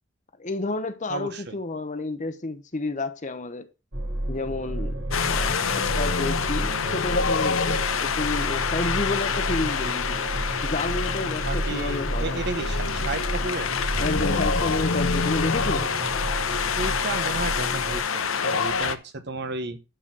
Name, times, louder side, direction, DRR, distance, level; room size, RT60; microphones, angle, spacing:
voice 1, 0.4-3.7 4.3-10.3 10.6-12.4 14.0-15.9, left 2 dB, 40° left, 0.9 m, -31 dB
voice 2, 1.1-1.6 11.5-14.5 15.8-15.9 16.8-19.8, right 3 dB, 55° right, 1.0 m, -33 dB
sound 1, 3.9-18.0, right 1 dB, 70° right, 2.4 m, -31 dB
Wind, 5.1-19.0, left 6 dB, 85° left, 0.8 m, -27 dB
11.0 x 4.2 x 6.1 m
head